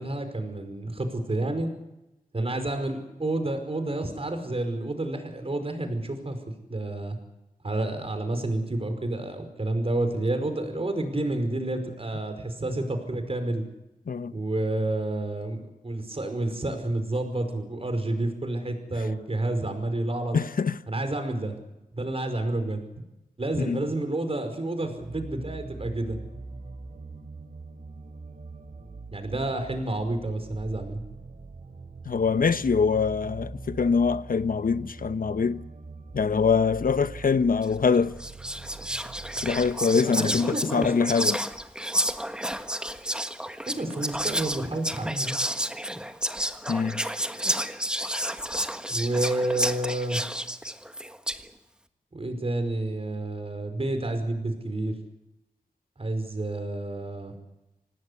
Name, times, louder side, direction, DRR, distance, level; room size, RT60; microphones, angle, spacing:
voice 1, 0.0-1.7 2.3-6.4 6.7-7.2 7.6-13.6 14.3-20.4 20.9-21.6 21.9-22.8 23.4-26.2 29.1-31.0 39.9-40.9 43.7-45.4 48.9-50.2 52.1-54.9 56.0-57.3, right 2 dB, 40° right, 5.1 m, -29 dB
voice 2, 20.3-20.8 23.7-23.8 32.1-35.6 36.1-38.1 39.4-41.4 46.7-47.0, left 5 dB, 70° left, 0.9 m, -24 dB
sound 1, 25.0-39.7, right 3 dB, 55° right, 3.1 m, -42 dB
Whispering, 37.6-37.8 38.2-51.5, equal, 5° right, 1.5 m, -31 dB
26.5 x 18.5 x 8.3 m
wide cardioid pair, 80°, 15 cm